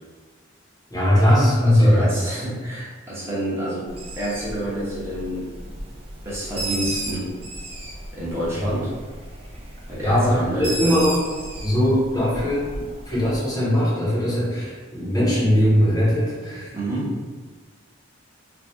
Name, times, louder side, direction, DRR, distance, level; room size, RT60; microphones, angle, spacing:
voice 1, 0.9-2.1 10.0-11.2 11.6-16.7, equal, 20° left, -7 dB, 0.8 m, -20 dB
voice 2, 1.6-5.5 6.2-7.3 8.1-8.9 9.9-11.0 16.7-17.2, equal, 15° right, -8 dB, 0.9 m, -28 dB
Bird, 3.9-13.5, right 2 dB, 30° right, 0.5 m, -35 dB
2.7 x 2.3 x 3.4 m, 1.4 s
head